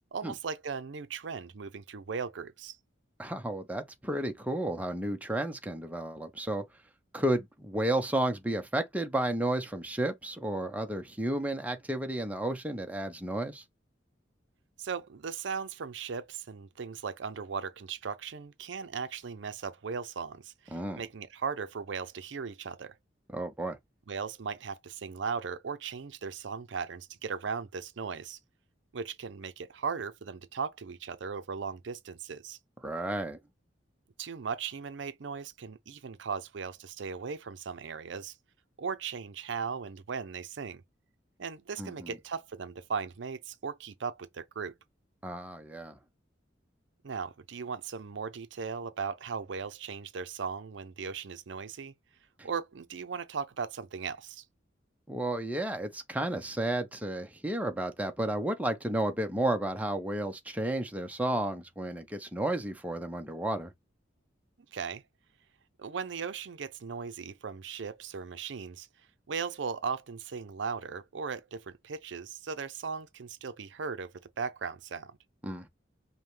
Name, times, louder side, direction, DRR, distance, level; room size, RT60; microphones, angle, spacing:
voice 1, 0.1-2.8 14.8-22.9 24.1-28.4 28.9-32.6 34.2-38.4 38.8-40.8 41.4-44.7 47.0-51.9 52.4-54.4 64.7-65.0 65.8-68.9 69.3-75.2, right 5 dB, 70° right, 0.5 m, -37 dB
voice 2, 3.2-6.6 7.1-13.6 20.7-21.0 23.3-23.8 32.8-33.4 41.8-42.1 45.2-46.0 52.4-52.5 55.1-63.7 75.4-75.7, right 1 dB, 10° right, 0.7 m, -32 dB
5.5 x 2.2 x 3.1 m
head